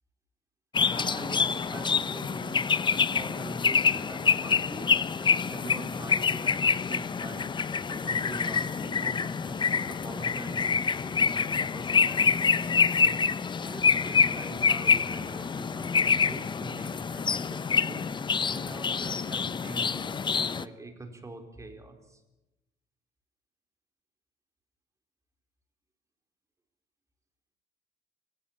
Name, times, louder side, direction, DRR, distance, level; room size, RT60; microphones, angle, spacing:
sound 1, 0.7-20.6, left 5 dB, 25° left, 0.8 m, -26 dB
voice 1, 0.9-2.7 3.0-7.6 7.9-18.1 18.5-22.2, right 2 dB, 20° right, 6 dB, 4.4 m, -44 dB
24.0 x 16.5 x 8.9 m, 0.97 s
cardioid pair, 110°, 17 cm